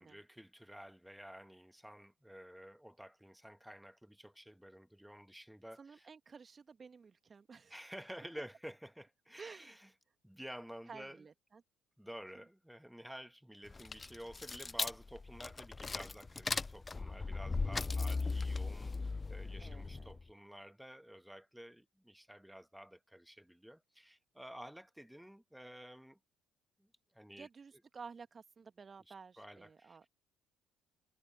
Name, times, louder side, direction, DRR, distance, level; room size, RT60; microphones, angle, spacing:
voice 1, 0.0-6.1 7.7-9.9 10.2-11.2 12.0-26.2 26.8-27.5 29.1-30.0, equal, ahead, 1.7 m, -52 dB
voice 2, 5.8-7.8 9.4-9.7 10.9-11.6 19.6-20.2 27.4-30.1, right 5 dB, 30° right, 2.0 m, -53 dB
sound 1, 13.7-20.2, left 3 dB, 25° left, 0.4 m, -38 dB
figure-of-eight pair, 50°, 0 cm